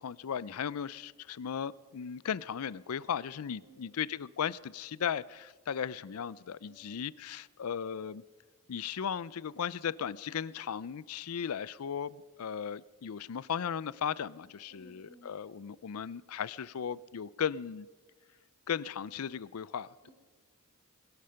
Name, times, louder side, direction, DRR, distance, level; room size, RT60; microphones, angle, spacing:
voice 1, 0.0-8.2 8.7-17.9 18.7-20.1, left 7 dB, 80° left, 20 dB, 0.5 m, -36 dB
voice 2, 3.6-4.0 6.7-7.0 14.7-15.3 20.0-20.1, right 1 dB, 85° right, 3 dB, 3.5 m, -58 dB
20.5 x 11.5 x 5.7 m, 1.4 s
head